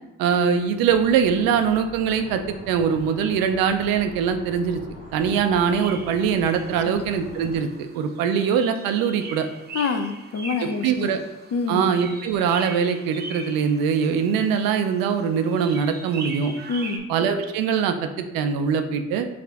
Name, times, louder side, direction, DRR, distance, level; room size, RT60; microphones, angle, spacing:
voice 1, 0.2-4.8 5.1-7.7 7.9-9.5 10.6-11.2 11.7-16.5 17.1-19.3, right 7 dB, 80° right, 7 dB, 0.5 m, -22 dB
sound 1, 0.9-7.6, equal, 85° left, 1.4 m, -43 dB
sound 2, 5.5-17.0, right 3 dB, 30° right, 0.7 m, -40 dB
voice 2, 9.7-11.1 11.5-11.8 16.7-17.0, left 4 dB, 45° left, 7 dB, 0.5 m, -26 dB
4.8 x 2.5 x 3.4 m, 1.0 s
supercardioid pair, 55°, 34 cm